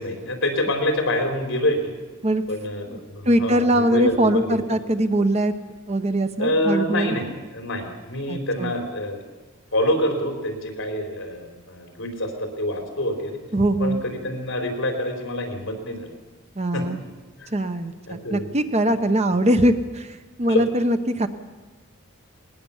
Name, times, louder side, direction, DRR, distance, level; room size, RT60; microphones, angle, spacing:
voice 1, 0.0-1.9 2.5-4.6 6.4-7.3 7.5-9.2 9.7-12.3 12.6-13.4 13.8-16.1 16.7-16.9 17.4-17.5 18.1-18.5 20.5-20.6, left 1 dB, 60° left, 4 dB, 4.2 m, -26 dB
voice 2, 3.3-5.5 5.9-7.2 8.3-8.7 13.5-14.0 16.6-17.0 17.5-21.3, right 1 dB, 30° right, 9 dB, 0.9 m, -22 dB
20.0 x 19.5 x 7.2 m, 1.3 s
head